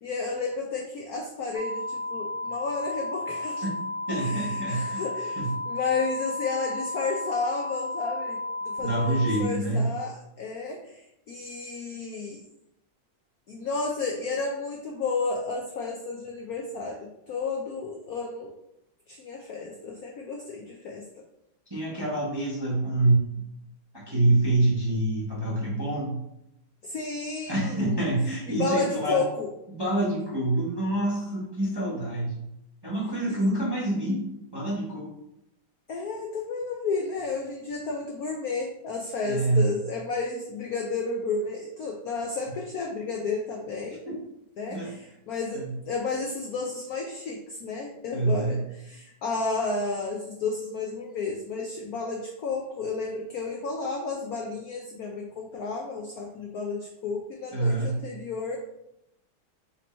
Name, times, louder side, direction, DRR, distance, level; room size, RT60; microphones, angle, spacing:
voice 1, 0.0-3.6 4.2-5.4 5.7-8.4 8.6-12.4 13.5-18.5 19.1-21.1 26.8-27.9 28.5-29.5 33.3-33.4 35.9-44.0 44.6-58.6, left 4 dB, 75° left, 1 dB, 0.8 m, -32 dB
sound 1, 1.5-9.4, left 2 dB, 55° right, 0.8 m, -33 dB
voice 2, 4.1-5.1 5.4-5.5 8.8-9.9 21.7-23.4 23.9-26.2 27.5-29.2 29.7-32.3 32.8-34.2 34.5-35.1 39.2-39.6 44.1-44.2 44.7-44.9 45.5-45.7 48.1-48.6 57.5-58.0, right 2 dB, 20° right, -6 dB, 0.7 m, -26 dB
4.4 x 2.8 x 4.2 m, 0.84 s
omnidirectional pair, 2.2 m